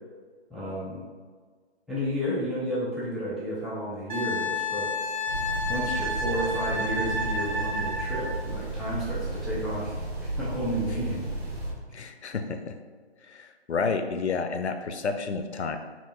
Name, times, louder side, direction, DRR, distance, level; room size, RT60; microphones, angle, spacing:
voice 1, 0.5-1.0 1.9-4.9 5.7-9.9 10.2-11.3, equal, ahead, -9 dB, 0.4 m, -32 dB
Wind instrument woodwind instrument, 4.1-8.3 11.0-11.1, left 1 dB, 45° right, 0.6 m, -30 dB
sound 1, 5.3-11.7, right 2 dB, 65° right, 1.3 m, -33 dB
voice 2, 11.9-12.7 13.2-15.8, left 4 dB, 80° left, 7 dB, 0.6 m, -30 dB
5.9 x 2.7 x 2.4 m, 1.6 s
figure-of-eight pair, 170°, 33 cm